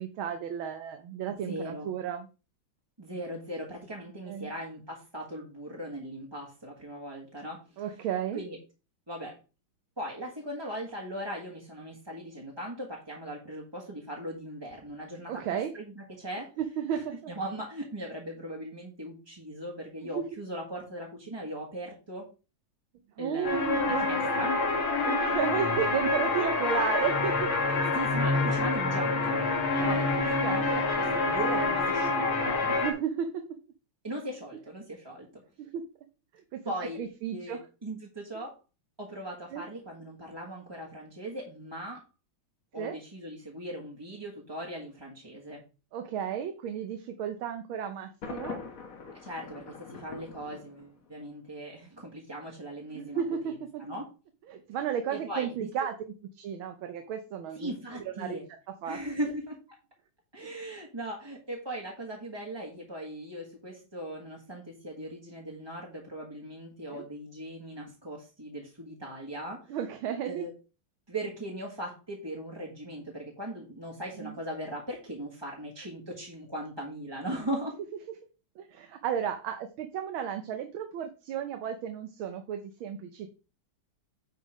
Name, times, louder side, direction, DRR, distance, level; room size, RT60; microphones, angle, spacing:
voice 1, 0.0-2.3 4.3-4.5 7.8-8.4 15.3-15.7 16.6-17.3 20.1-20.2 23.2-24.0 25.1-27.5 30.2-30.6 32.7-33.5 35.6-35.9 36.5-37.6 39.5-39.6 42.8-43.0 45.9-48.6 52.9-53.8 54.5-55.9 56.4-58.4 58.8-59.0 66.9-67.1 69.7-70.4 74.2-74.3 78.6-83.3, right 8 dB, 80° right, 6 dB, 1.7 m, -33 dB
voice 2, 1.3-1.9 3.0-7.6 8.3-8.6 9.1-9.4 10.0-15.4 15.7-16.5 16.9-22.3 23.2-24.6 26.4-26.8 27.9-29.4 29.8-30.2 30.5-32.7 34.0-35.4 36.6-37.0 37.3-38.5 39.0-42.0 42.7-45.6 49.1-54.0 55.1-55.7 57.5-58.4 58.8-59.8 60.3-69.8 70.2-70.5 71.1-77.8, right 1 dB, 15° right, -3 dB, 1.4 m, -39 dB
sound 1, 23.4-32.9, left 3 dB, 85° left, 2.4 m, -27 dB
Thunder, 48.2-51.2, left 4 dB, 45° left, 1.5 m, -42 dB
9.5 x 3.7 x 4.8 m, 0.32 s
omnidirectional pair, 2.2 m